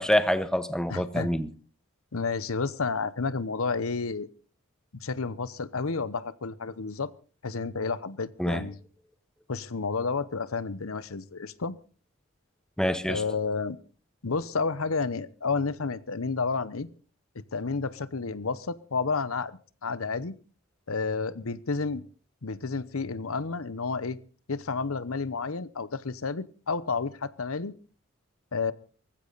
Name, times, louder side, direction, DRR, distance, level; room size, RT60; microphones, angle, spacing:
voice 1, 0.0-1.5 8.4-8.6 12.8-13.2, equal, 5° left, 1.0 m, -26 dB
voice 2, 0.9-1.3 2.1-4.3 5.0-7.1 7.4-8.8 9.5-11.7 13.1-13.8 14.2-16.9 17.3-20.4 20.9-22.0 22.4-24.2 24.5-27.7 28.5-28.7, left 4 dB, 85° left, 0.9 m, -31 dB
19.0 x 15.5 x 4.0 m
head